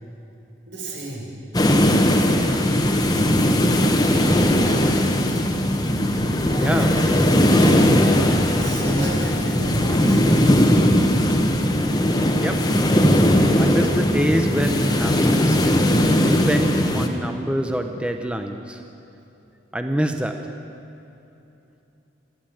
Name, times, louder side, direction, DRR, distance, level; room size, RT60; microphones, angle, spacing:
voice 1, 0.7-1.3 6.4-7.3 8.6-10.4, right 1 dB, 80° right, -2 dB, 5.7 m, -33 dB
sound 1, 1.5-17.1, equal, 20° left, 1.3 m, -18 dB
voice 2, 6.6-7.0 8.8-9.1 12.4-12.8 13.6-18.8 19.7-20.6, equal, 5° right, 5 dB, 0.8 m, -25 dB
27.5 x 11.0 x 9.1 m, 2.8 s
head